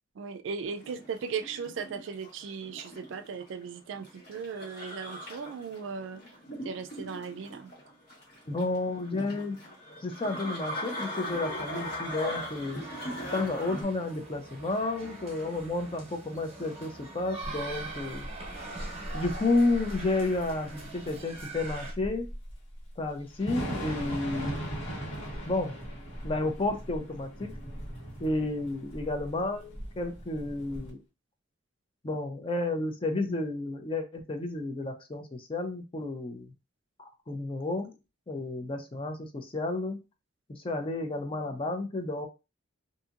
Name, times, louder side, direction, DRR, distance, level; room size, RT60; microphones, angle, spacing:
voice 1, 0.2-6.2 6.6-7.7, right 6 dB, 70° right, 0.3 m, -37 dB
sound 1, 0.6-13.8, equal, 50° left, 1.4 m, -40 dB
voice 2, 8.5-9.6 10.0-12.8 13.3-18.3 19.1-22.3 23.0-24.7 25.5-25.7 26.2-27.5 28.2-31.0 32.0-36.5 37.3-37.9 38.3-40.0 40.5-42.3, left 2 dB, 25° left, 0.5 m, -31 dB
sound 2, 11.2-21.9, right 2 dB, 35° right, 1.0 m, -43 dB
Thunder / Rain, 17.4-30.9, equal, 80° left, 1.4 m, -39 dB
2.7 x 2.6 x 2.4 m
head